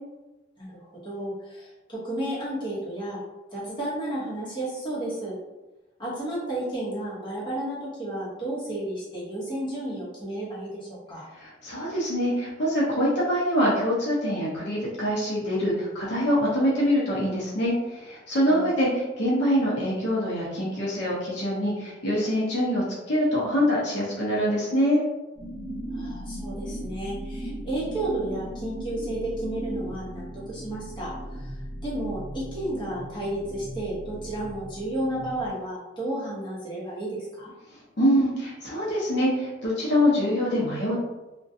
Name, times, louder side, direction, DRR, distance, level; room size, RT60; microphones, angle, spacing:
voice 1, 0.6-3.2 3.5-5.3 6.0-11.2 18.5-18.7 25.9-31.6 31.8-37.5, right 1 dB, 25° left, -8 dB, 0.9 m, -32 dB
voice 2, 11.4-25.0 38.0-41.0, equal, 60° left, -6 dB, 0.6 m, -24 dB
sound 1, 25.4-35.5, right 1 dB, 25° right, 1.0 m, -37 dB
2.3 x 2.2 x 2.6 m, 1.1 s
head